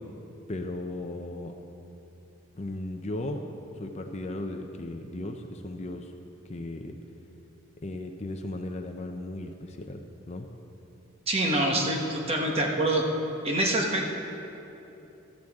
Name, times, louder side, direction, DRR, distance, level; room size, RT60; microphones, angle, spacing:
voice 1, 0.5-1.6 2.6-3.4 3.8-6.1 6.5-7.0 7.8-10.5, left 2 dB, 30° left, 5 dB, 0.5 m, -36 dB
voice 2, 11.3-13.0 13.4-14.0, right 1 dB, 30° right, 0 dB, 1.2 m, -25 dB
14.0 x 13.0 x 3.6 m, 3.0 s
head